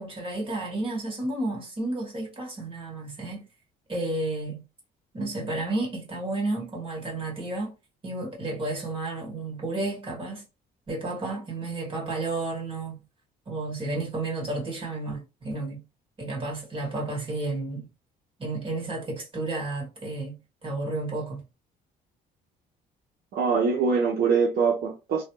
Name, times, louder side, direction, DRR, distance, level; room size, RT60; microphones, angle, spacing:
voice 1, 0.0-3.5 3.9-4.6 5.1-7.7 8.0-10.4 10.9-13.0 13.5-15.8 16.2-17.9 18.4-21.4, right 2 dB, 30° right, 1.8 m, -32 dB
voice 2, 23.3-25.2, right 5 dB, 65° right, 0.8 m, -23 dB
3.2 x 2.2 x 3.0 m
cardioid pair, 110°, 17 cm